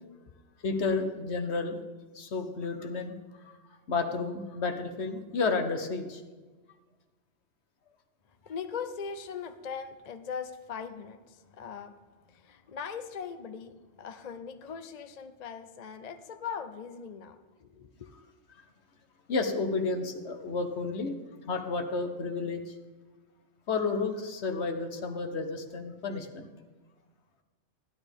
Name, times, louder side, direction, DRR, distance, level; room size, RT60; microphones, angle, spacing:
voice 1, 0.6-1.8 2.1-3.1 3.9-6.2 19.3-21.1 21.4-22.7 23.7-26.5, left 4 dB, 70° left, 6 dB, 1.3 m, -31 dB
voice 2, 8.5-12.0 12.2-18.1, left 6 dB, 45° left, 8 dB, 0.6 m, -40 dB
14.5 x 11.0 x 3.5 m, 1.3 s
omnidirectional pair, 1.2 m